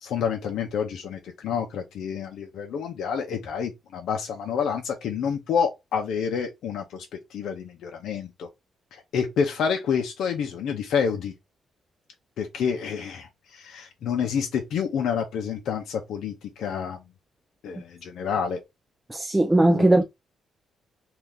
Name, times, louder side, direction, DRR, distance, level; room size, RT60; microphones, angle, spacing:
voice 1, 0.0-7.1 7.3-8.5 8.9-11.3 12.4-17.0 17.6-18.6 19.8-19.9, left 7 dB, 80° left, 0.6 m, -28 dB
voice 2, 19.1-20.0, right 1 dB, 10° right, 0.3 m, -19 dB
2.9 x 2.4 x 3.5 m
cardioid pair, 115°, 0 cm